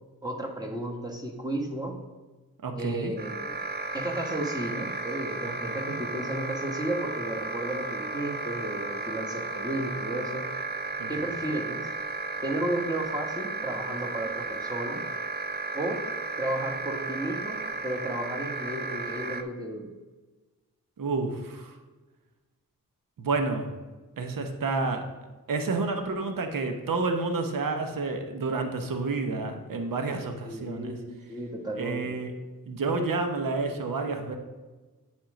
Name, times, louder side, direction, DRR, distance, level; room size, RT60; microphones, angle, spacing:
voice 1, 0.2-2.0 2.7-3.6 3.9-10.5 11.1-11.9 12.4-15.0 15.7-16.0 16.4-17.6 17.8-19.9 30.4-32.2, right 1 dB, 10° right, 0 dB, 1.5 m, -33 dB
voice 2, 2.6-3.1 5.5-5.9 11.0-11.1 21.0-21.7 23.2-23.7 24.2-25.0 25.5-30.9 31.8-32.3 32.7-34.4, right 3 dB, 70° right, 5 dB, 0.9 m, -30 dB
sound 1, 3.2-19.4, right 3 dB, 30° right, 0.6 m, -34 dB
8.7 x 3.7 x 5.0 m, 1.2 s
cardioid pair, 50°, 34 cm